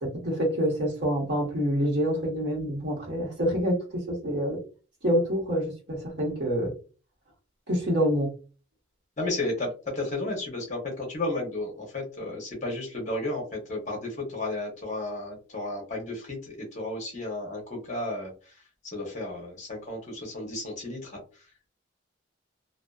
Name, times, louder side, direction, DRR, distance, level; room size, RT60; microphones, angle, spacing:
voice 1, 0.0-4.6 5.0-6.7 7.7-8.3, equal, 55° right, -2 dB, 1.1 m, -27 dB
voice 2, 9.2-21.2, left 2 dB, 35° left, -1 dB, 0.7 m, -33 dB
2.6 x 2.2 x 2.3 m, 0.35 s
head